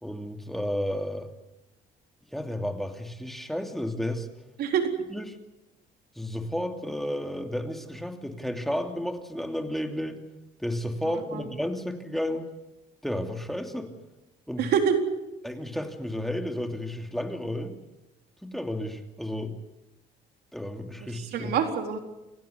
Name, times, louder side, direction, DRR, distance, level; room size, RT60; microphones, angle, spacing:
voice 1, 0.0-1.3 2.3-4.3 5.1-5.2 6.1-10.2 10.6-12.5 13.0-13.9 14.5-14.6 15.4-17.7 18.4-19.5 20.5-21.5, left 1 dB, ahead, 4 dB, 2.8 m, -32 dB
voice 2, 4.6-4.9 11.0-11.4 14.6-15.0 21.0-22.0, right 7 dB, 70° right, 4 dB, 4.1 m, -26 dB
28.5 x 16.5 x 8.3 m, 0.97 s
cardioid pair, 110°, 17 cm